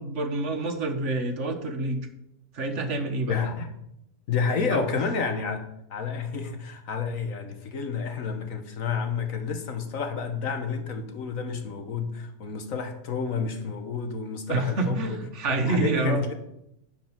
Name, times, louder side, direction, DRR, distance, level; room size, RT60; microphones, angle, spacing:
voice 1, 0.0-2.1 2.5-3.4 4.7-5.0 14.5-16.2, right 2 dB, 50° right, 6 dB, 1.5 m, -27 dB
voice 2, 3.3-3.7 4.3-5.6 5.9-15.2 15.5-16.3, left 5 dB, 60° left, 7 dB, 1.5 m, -30 dB
10.5 x 5.3 x 7.4 m, 0.80 s
omnidirectional pair, 1.6 m